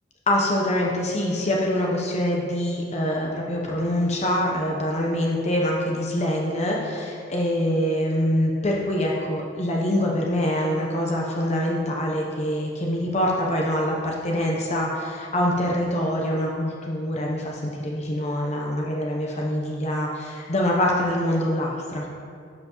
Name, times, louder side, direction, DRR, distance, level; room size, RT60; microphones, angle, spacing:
voice 1, 0.3-22.0, left 1 dB, 40° left, -2 dB, 0.8 m, -25 dB
11.5 x 5.6 x 3.0 m, 2.4 s
head